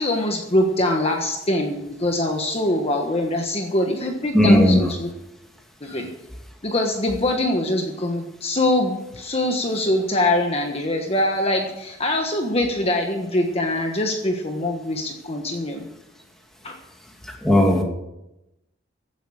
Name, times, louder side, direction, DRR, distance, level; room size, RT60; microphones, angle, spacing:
voice 1, 0.0-5.1 5.8-6.1 6.6-15.8 16.6-16.8, left 1 dB, 30° left, 2 dB, 1.4 m, -23 dB
voice 2, 4.3-4.8 17.4-17.8, left 1 dB, ahead, 0 dB, 2.7 m, -15 dB
16.0 x 9.0 x 6.5 m, 0.90 s
head